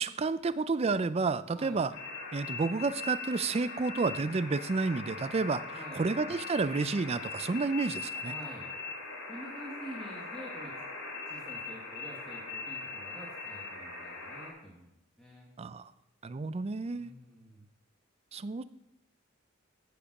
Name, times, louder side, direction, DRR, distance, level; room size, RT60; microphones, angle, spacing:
voice 1, 0.0-1.9 2.3-5.6 5.9-8.3 15.6-15.9 16.2-17.1 18.3-18.6, right 4 dB, 30° right, 14 dB, 0.4 m, -30 dB
sound 1, 1.9-14.5, left 4 dB, 90° left, 2.8 m, -41 dB
voice 2, 5.7-6.1 8.2-8.7 9.3-10.7 11.3-15.5 16.9-17.6, equal, 5° left, -4 dB, 1.6 m, -48 dB
15.0 x 5.1 x 5.9 m, 0.84 s
head